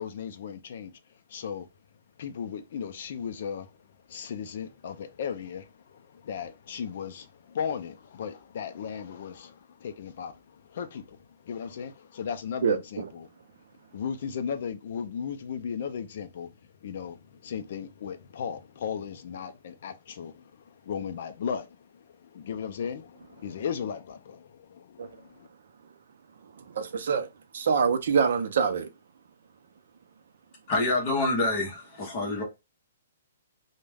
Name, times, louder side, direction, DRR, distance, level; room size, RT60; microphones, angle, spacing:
voice 1, 0.0-1.7 2.2-13.3 13.9-25.5, left 7 dB, 40° left, 0.4 m, -36 dB
voice 2, 12.6-13.0 25.0-25.1 26.7-27.3 27.5-28.9, right 6 dB, 50° right, 0.5 m, -25 dB
voice 3, 30.7-32.4, left 2 dB, 20° left, 0.8 m, -27 dB
2.3 x 2.1 x 3.2 m
hypercardioid pair, 180°, 0 cm